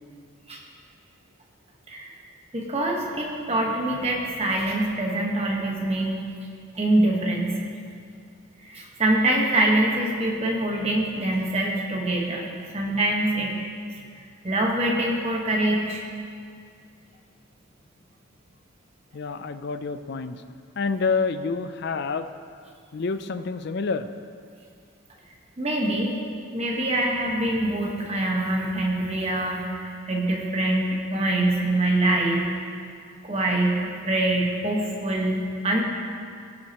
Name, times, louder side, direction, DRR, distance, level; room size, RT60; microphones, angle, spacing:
voice 1, 2.5-6.2 6.7-7.7 8.6-13.5 14.4-16.0 25.6-26.2 26.5-32.5 33.2-35.8, right 1 dB, 30° right, -1 dB, 1.3 m, -24 dB
voice 2, 19.1-20.4 20.8-22.3 22.9-24.1, left 4 dB, 50° left, 10 dB, 0.4 m, -28 dB
17.5 x 7.5 x 3.0 m, 2.3 s
head